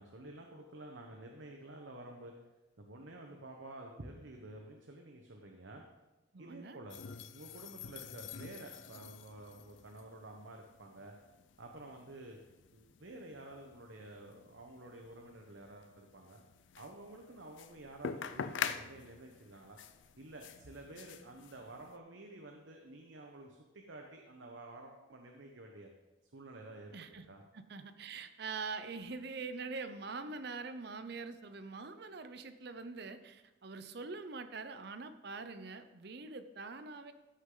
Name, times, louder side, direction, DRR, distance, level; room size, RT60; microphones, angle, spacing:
voice 1, 0.0-2.3 2.8-5.8 6.4-7.0 7.3-11.1 11.6-12.4 12.7-16.4 16.8-19.8 20.2-25.9 26.2-26.9 27.3-27.4, right 2 dB, 80° right, 2 dB, 1.0 m, -51 dB
voice 2, 6.3-6.8 26.9-27.2 27.5-37.1, right 4 dB, 60° right, 10 dB, 0.7 m, -44 dB
sound 1, 6.9-22.0, left 7 dB, 85° left, 0.5 m, -46 dB
15.5 x 6.4 x 3.9 m, 1.1 s
head